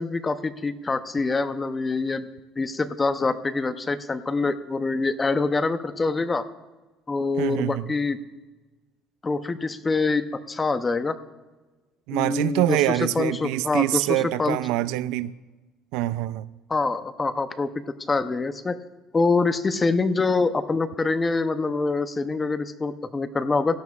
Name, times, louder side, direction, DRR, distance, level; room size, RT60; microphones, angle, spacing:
voice 1, 0.0-2.3 2.6-6.4 7.1-8.2 9.2-11.2 12.1-12.8 13.2-14.6 16.7-17.7 18.0-18.8 19.1-23.8, left 3 dB, 20° left, 12 dB, 0.6 m, -25 dB
voice 2, 7.4-7.9 12.1-15.3 15.9-16.5, right 15 dB, 80° right, 17 dB, 0.3 m, -25 dB
16.5 x 12.5 x 2.4 m, 1.2 s
cardioid pair, 130°, 0 cm